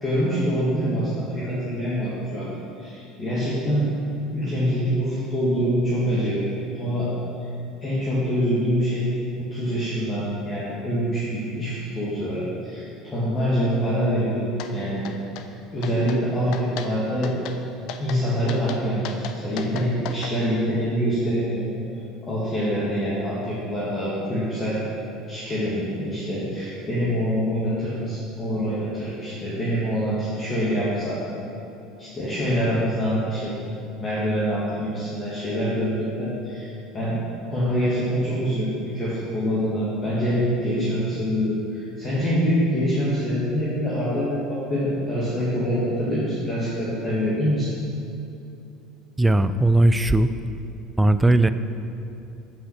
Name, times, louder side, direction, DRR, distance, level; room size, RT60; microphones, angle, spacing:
voice 1, 0.0-2.5 2.8-3.9 4.3-6.4 6.7-7.1 7.4-7.5 7.8-9.1 9.5-14.5 14.7-15.0 15.7-17.3 18.0-21.6 22.2-24.8 25.3-31.2 32.0-33.6 34.0-36.7 36.9-37.2 37.5-47.7, equal, 35° left, -8 dB, 1.7 m, -25 dB
sound 1, 14.6-14.7 15.0-15.5 15.8-16.2 16.5-16.9 17.2-17.6 17.9-18.2 18.5-20.3, left 8 dB, 65° left, 0.5 m, -35 dB
voice 2, 49.2-50.3 51.0-51.5, right 2 dB, 10° right, 11 dB, 0.3 m, -18 dB
7.4 x 5.7 x 4.3 m, 2.8 s
hypercardioid pair, 80°, 0 cm